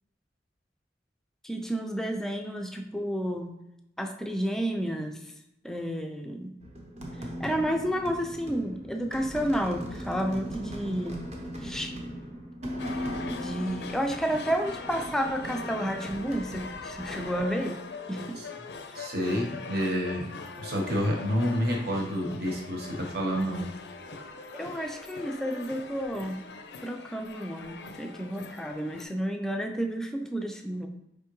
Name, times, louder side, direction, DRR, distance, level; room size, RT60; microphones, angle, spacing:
voice 1, 1.4-3.6 4.0-5.3 5.6-6.5 7.2-11.2 11.6-11.9 13.3-17.8 18.1-18.4 24.5-26.4 26.8-30.9, equal, 5° left, 3 dB, 0.4 m, -31 dB
sound 1, 6.6-17.5, equal, 40° right, 0.8 m, -39 dB
sound 2, 12.8-29.0, left 4 dB, 70° left, 0.5 m, -42 dB
voice 2, 18.9-20.3 20.6-23.7, equal, 60° right, 0 dB, 1.0 m, -29 dB
5.0 x 3.4 x 3.0 m, 0.87 s
head